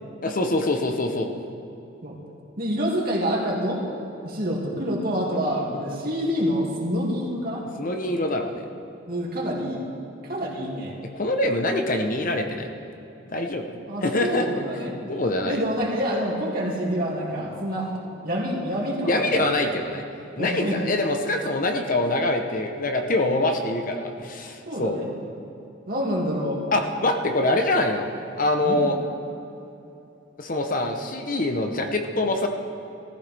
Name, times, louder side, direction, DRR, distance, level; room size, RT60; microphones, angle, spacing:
voice 1, 0.2-1.3 7.8-8.6 11.1-12.7 13.3-13.6 14.0-14.5 15.1-15.6 19.1-20.0 20.4-25.0 26.7-28.1 28.4-29.0 30.4-32.5, left 2 dB, 45° left, 4 dB, 0.9 m, -24 dB
voice 2, 2.6-3.8 4.2-7.6 9.1-9.8 10.2-11.0 13.9-15.0 15.4-17.9 18.2-19.4 20.4-20.8 24.7-25.1 25.9-26.7 28.6-28.8, equal, 50° right, -3 dB, 2.4 m, -27 dB
17.5 x 14.5 x 3.5 m, 3.0 s
head